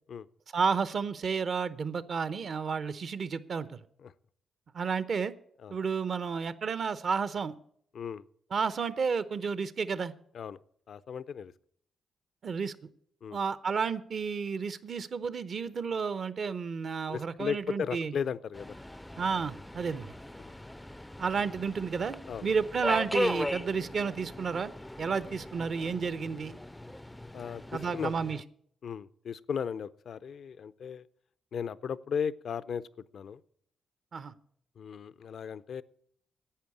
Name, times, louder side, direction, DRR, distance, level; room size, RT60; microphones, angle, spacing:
voice 1, 0.5-3.7 4.7-5.3 5.7-7.5 8.5-10.1 12.4-12.8 13.3-18.1 19.2-20.1 21.2-22.2 22.4-24.7 25.0-26.6 27.7-28.4 34.1-34.3, right 5 dB, 60° right, 0.8 m, -31 dB
voice 2, 10.9-11.5 13.2-13.4 17.1-18.8 22.3-22.5 27.3-28.1 28.8-31.0 31.5-32.8 33.1-33.4 34.8-35.8, left 7 dB, 70° left, 0.5 m, -36 dB
Subway metro underground, 18.5-28.4, left 1 dB, 10° left, 0.4 m, -38 dB
11.5 x 8.7 x 8.4 m
supercardioid pair, 60°, 0 cm